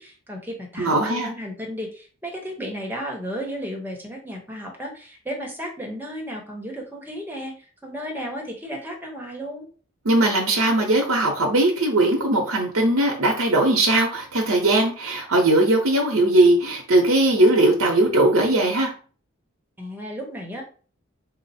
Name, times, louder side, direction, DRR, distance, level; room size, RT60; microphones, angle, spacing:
voice 1, 0.0-9.7 19.8-20.6, equal, 10° right, 0 dB, 0.8 m, -34 dB
voice 2, 0.8-1.3 10.0-18.9, right 2 dB, 75° right, 2 dB, 0.8 m, -19 dB
4.2 x 2.0 x 4.1 m, 0.40 s
head